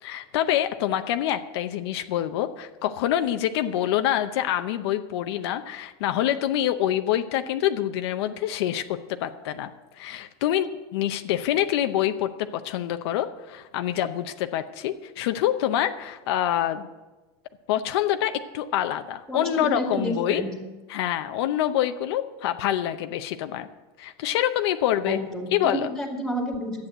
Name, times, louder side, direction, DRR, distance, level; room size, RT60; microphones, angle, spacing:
voice 1, 0.0-8.8 9.2-9.7 10.0-16.9 17.7-20.4 20.9-23.7 24.0-25.2 25.5-25.9, left 11 dB, 80° left, 8 dB, 0.7 m, -26 dB
voice 2, 19.3-20.5 25.0-26.9, equal, 5° left, 2 dB, 2.3 m, -30 dB
11.5 x 8.5 x 7.9 m, 1.2 s
supercardioid pair, 135°, 13 cm